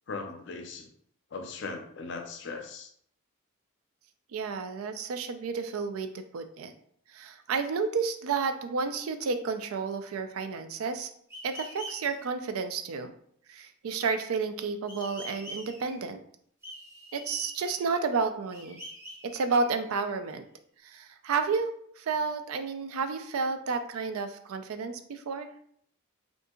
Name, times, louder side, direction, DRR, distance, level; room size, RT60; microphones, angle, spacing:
voice 1, 0.1-0.9 1.3-2.9, left 4 dB, 55° left, 5 dB, 0.4 m, -38 dB
voice 2, 4.3-6.7 7.1-11.1 11.4-13.1 13.5-16.2 17.1-18.8 19.2-20.4 20.8-25.5, right 4 dB, 90° right, 9 dB, 0.4 m, -31 dB
sound 1, 11.3-12.1 14.9-16.1 16.6-18.1 18.5-20.1, equal, 10° right, 0.5 m, -45 dB
2.7 x 2.5 x 3.6 m, 0.65 s
head